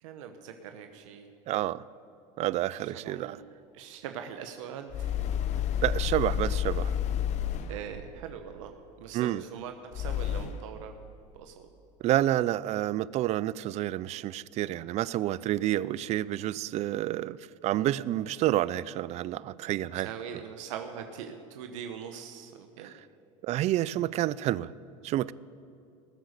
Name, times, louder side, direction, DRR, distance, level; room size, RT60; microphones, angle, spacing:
voice 1, 0.0-1.3 2.8-3.4 3.7-5.1 7.7-8.7 9.0-10.9 11.3-11.7 17.7-17.9 19.9-22.9, right 8 dB, 90° right, 6 dB, 1.0 m, -42 dB
voice 2, 1.5-1.8 2.4-3.4 5.8-6.9 9.1-9.4 12.0-17.4 17.6-20.1 22.8-22.9 23.4-24.7 25.0-25.3, right 14 dB, 45° right, 20 dB, 0.4 m, -29 dB
sound 1, 4.9-8.0 9.9-10.8, left 9 dB, 45° left, 0.9 m, -30 dB
19.0 x 8.0 x 6.6 m, 2.7 s
supercardioid pair, 115°, 16 cm